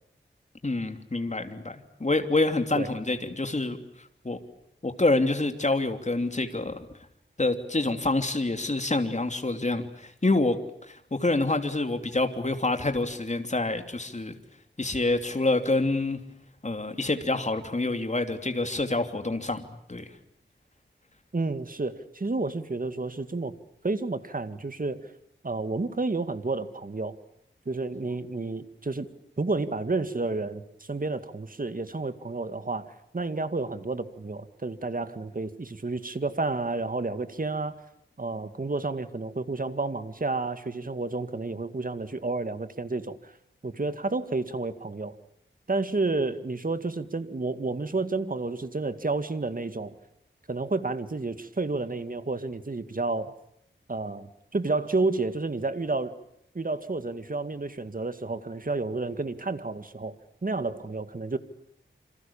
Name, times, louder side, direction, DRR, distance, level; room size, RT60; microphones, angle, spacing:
voice 1, 0.6-3.8 4.2-4.4 4.8-6.8 7.4-10.6 10.9-14.3 14.8-16.2 16.6-20.1, left 2 dB, 35° left, 7 dB, 3.0 m, -27 dB
voice 2, 21.3-23.5 23.8-25.1 25.4-27.2 27.7-29.1 29.4-37.8 38.2-43.3 43.6-45.1 45.7-49.9 50.5-53.3 53.9-56.2 56.5-60.2 60.4-61.4, right 3 dB, 45° right, 11 dB, 2.1 m, -30 dB
28.0 x 27.0 x 7.2 m, 0.74 s
wide cardioid pair, 80°, 20 cm